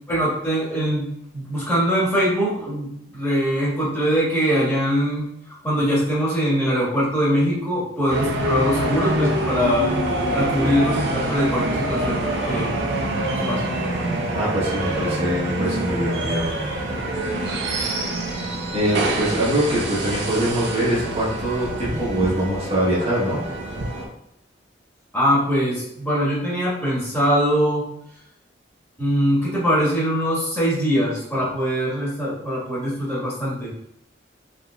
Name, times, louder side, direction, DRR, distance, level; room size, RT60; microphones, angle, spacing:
voice 1, 0.1-1.1 1.3-5.2 5.6-9.9 10.2-12.2 12.4-12.7 13.3-13.6 25.1-27.8 29.0-33.7, equal, 15° left, -7 dB, 1.5 m, -22 dB
sound 1, 8.1-24.1, right 1 dB, 65° right, 0.7 m, -25 dB
voice 2, 14.3-16.5 18.7-23.4, right 1 dB, 35° right, -7 dB, 1.0 m, -23 dB
3.9 x 3.4 x 2.3 m, 0.75 s
head